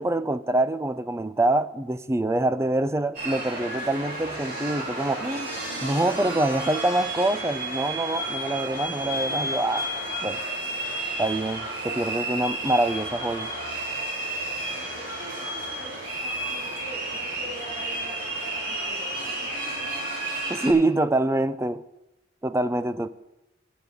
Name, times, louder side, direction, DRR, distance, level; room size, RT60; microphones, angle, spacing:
voice 1, 0.0-5.5 5.8-9.9 10.2-10.4 11.2-13.5 20.5-21.8 22.4-23.1, right 2 dB, 15° right, 13 dB, 0.5 m, -25 dB
sound 1, 3.1-20.7, right 1 dB, 55° right, 4.8 m, -32 dB
voice 2, 14.6-20.1, equal, 35° right, -5 dB, 4.4 m, -44 dB
12.0 x 6.7 x 9.3 m, 0.94 s
head